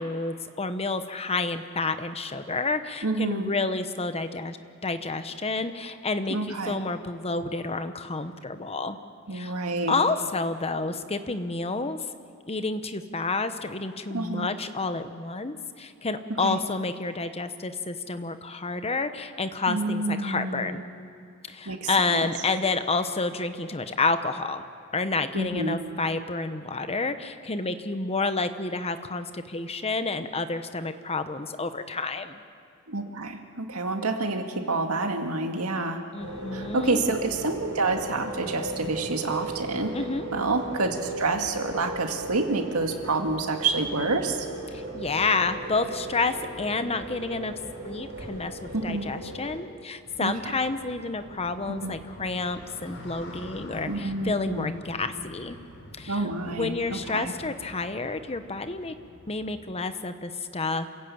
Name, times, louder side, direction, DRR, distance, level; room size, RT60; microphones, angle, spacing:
voice 1, 0.0-4.6 4.8-9.0 9.3-9.5 9.9-12.0 12.5-20.8 21.5-24.6 24.9-32.4 36.1-37.0 39.9-40.3 44.7-55.6 55.9-58.9 59.3-60.9, left 3 dB, 30° left, 10 dB, 1.1 m, -29 dB
voice 2, 3.0-3.5 6.3-6.8 9.3-9.9 14.1-14.5 16.4-16.6 19.7-20.7 21.7-22.3 25.3-25.8 32.9-36.0 36.5-39.9 40.3-44.5 48.7-49.1 50.2-50.3 51.8-51.9 53.9-54.7 56.1-57.3, right 3 dB, 85° right, 4 dB, 2.1 m, -28 dB
sound 1, 36.2-49.6, right 1 dB, 65° right, 7.6 m, -37 dB
sound 2, 50.0-59.7, left 1 dB, 85° left, 3.9 m, -46 dB
28.0 x 15.5 x 8.7 m, 2.3 s
head